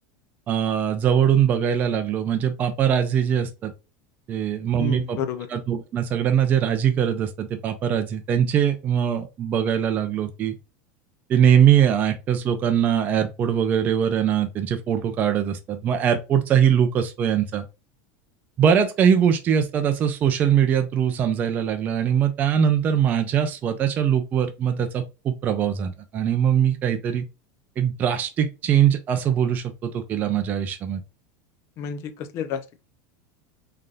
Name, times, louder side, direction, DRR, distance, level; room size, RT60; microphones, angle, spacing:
voice 1, 0.5-3.7 4.3-5.2 5.5-10.5 11.3-17.6 18.6-27.2 27.8-31.0, right 8 dB, 20° right, 0.4 m, -22 dB
voice 2, 4.8-5.5 31.8-32.8, left 7 dB, 30° left, 0.5 m, -30 dB
3.8 x 3.3 x 2.3 m
supercardioid pair, 180°, 9 cm